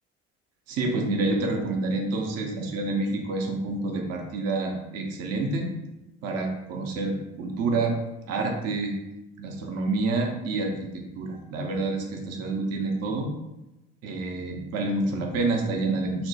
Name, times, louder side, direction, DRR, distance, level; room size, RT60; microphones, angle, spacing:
voice 1, 0.7-5.7 6.2-8.0 8.3-8.9 9.4-13.3 14.0-16.3, right 3 dB, 50° right, 2 dB, 0.6 m, -28 dB
2.8 x 2.1 x 2.7 m, 0.94 s
hypercardioid pair, 55°, 33 cm